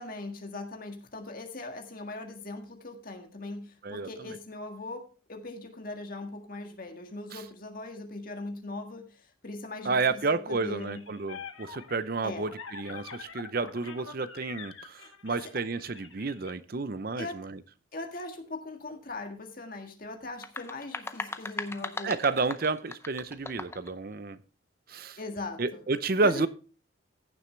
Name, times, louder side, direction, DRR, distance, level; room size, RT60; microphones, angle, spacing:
voice 1, 0.0-10.2 10.5-11.0 12.2-12.5 15.0-15.4 17.2-17.4 17.9-22.2 25.2-25.8 26.2-26.5, left 2 dB, 45° left, 1.7 m, -40 dB
voice 2, 3.8-4.4 7.3-7.4 9.8-17.6 22.0-24.4 24.9-25.2 25.6-26.5, right 3 dB, 45° right, 0.6 m, -31 dB
sound 1, 10.8-16.5, left 6 dB, 80° left, 1.6 m, -45 dB
sound 2, 20.3-23.9, left 3 dB, 15° left, 0.6 m, -39 dB
15.5 x 7.1 x 3.3 m
head